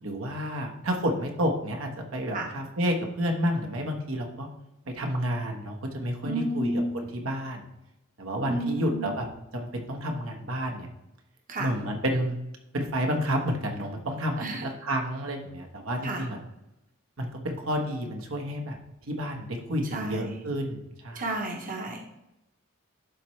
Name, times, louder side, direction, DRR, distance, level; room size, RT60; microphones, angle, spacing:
voice 1, 0.0-4.5 4.9-6.8 7.1-7.6 8.2-9.3 9.5-10.9 11.6-12.4 12.7-16.4 17.2-18.8 19.1-21.2, equal, 70° right, 2 dB, 1.2 m, -30 dB
voice 2, 6.2-7.0 8.5-9.1 11.5-11.7 14.4-14.6 16.0-16.2 19.9-20.4 21.1-22.0, right 1 dB, 40° right, 1 dB, 1.1 m, -31 dB
11.5 x 4.3 x 3.2 m, 0.91 s
head